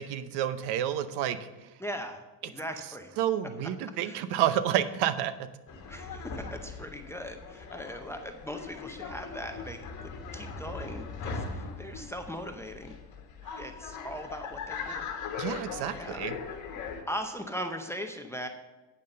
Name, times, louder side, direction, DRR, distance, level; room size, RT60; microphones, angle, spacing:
voice 1, 0.0-1.4 3.2-5.5 15.4-16.4, right 11 dB, 55° right, 13 dB, 0.8 m, -29 dB
voice 2, 1.8-3.1 4.0-4.2 5.9-12.9 13.6-15.1 15.9-16.2 17.1-18.5, equal, 5° left, 6 dB, 0.6 m, -39 dB
sound 1, 5.7-17.0, left 5 dB, 40° left, 1.6 m, -40 dB
9.0 x 5.4 x 6.4 m, 1.1 s
supercardioid pair, 110°, 47 cm